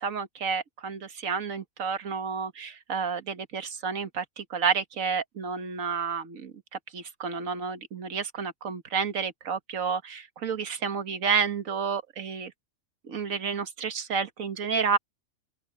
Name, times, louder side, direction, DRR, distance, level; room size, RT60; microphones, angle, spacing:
voice 1, 0.0-12.5 13.0-15.0, right 6 dB, 85° right, 1.7 m, -30 dB
open air
omnidirectional pair, 1.4 m